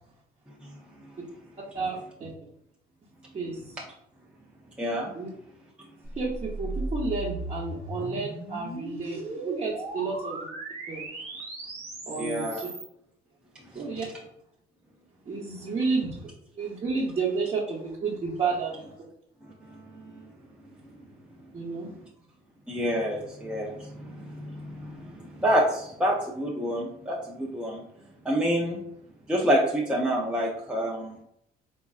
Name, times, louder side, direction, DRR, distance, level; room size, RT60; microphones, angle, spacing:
voice 1, 1.7-2.3 3.3-3.8 5.1-5.3 6.2-10.5 10.9-11.1 12.1-12.7 13.7-14.1 15.3-18.8 21.5-21.9, right 4 dB, 35° right, -6 dB, 0.8 m, -31 dB
voice 2, 4.8-5.1 12.2-12.6 13.7-13.9 20.0-20.1 22.7-27.8 28.2-28.8 29.3-31.1, equal, 5° right, -2 dB, 0.5 m, -28 dB
sound 1, 6.0-12.9, right 1 dB, 70° right, 1.0 m, -37 dB
4.3 x 2.4 x 2.3 m, 0.75 s
cardioid pair, 110°, 17 cm